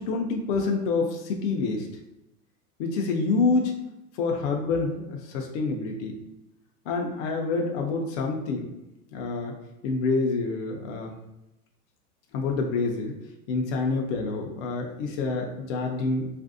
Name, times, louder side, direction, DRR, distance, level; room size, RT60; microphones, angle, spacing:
voice 1, 0.0-1.9 2.8-3.7 4.1-6.2 6.9-8.7 9.1-9.5 9.8-11.1 12.3-13.1 13.5-16.3, left 3 dB, 50° left, 1 dB, 0.5 m, -27 dB
3.3 x 2.5 x 2.4 m, 0.92 s
supercardioid pair, 140°, 47 cm